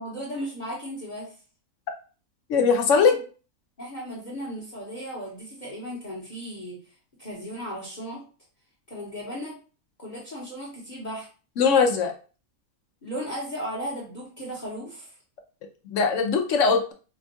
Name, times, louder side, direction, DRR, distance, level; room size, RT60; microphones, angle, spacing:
voice 1, 0.0-1.3 2.9-3.2 3.8-6.8 7.2-8.2 8.9-9.6 10.0-11.3 13.0-15.1, equal, 35° left, -4 dB, 1.0 m, -36 dB
voice 2, 2.5-3.1 11.6-12.1 15.9-16.9, left 5 dB, 65° left, 4 dB, 0.8 m, -20 dB
5.1 x 2.3 x 2.7 m, 0.36 s
omnidirectional pair, 1.6 m